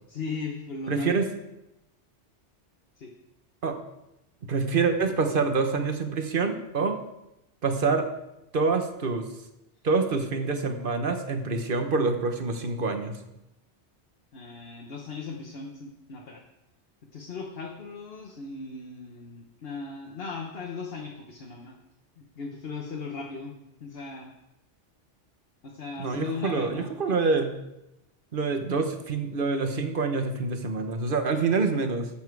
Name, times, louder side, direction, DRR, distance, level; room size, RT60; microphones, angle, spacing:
voice 1, 0.1-1.2 3.0-3.1 14.3-16.4 17.1-21.8 22.2-24.3 25.6-26.9, left 4 dB, 60° left, 1 dB, 1.2 m, -37 dB
voice 2, 0.9-1.2 3.6-3.7 4.4-7.0 7.6-8.1 8.5-9.3 9.8-13.2 26.0-27.5 28.3-32.1, right 4 dB, 50° right, 6 dB, 1.2 m, -26 dB
12.5 x 7.3 x 4.7 m, 0.91 s
omnidirectional pair, 1.2 m